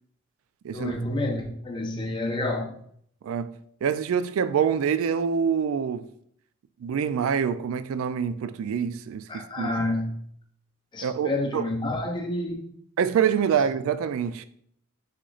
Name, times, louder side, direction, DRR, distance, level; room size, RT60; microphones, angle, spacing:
voice 1, 0.7-2.7 9.3-10.2 10.9-12.7, left 2 dB, 20° left, 0.5 m, -29 dB
voice 2, 3.2-6.1 6.8-9.7 11.0-11.6 13.0-14.4, right 7 dB, 70° right, 0.3 m, -26 dB
6.1 x 3.0 x 2.4 m
head